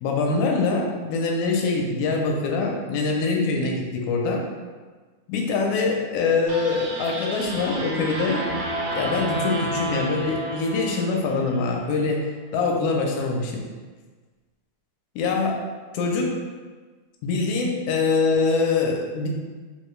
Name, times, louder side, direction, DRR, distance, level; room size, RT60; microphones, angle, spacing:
voice 1, 0.0-4.4 5.3-8.5 8.9-13.7 15.2-15.6 15.9-16.4 17.2-19.3, left 4 dB, 80° left, 0 dB, 1.9 m, -24 dB
sound 1, 6.5-11.8, right 1 dB, 75° right, 1.5 m, -30 dB
4.9 x 2.2 x 3.1 m, 1.4 s
omnidirectional pair, 3.4 m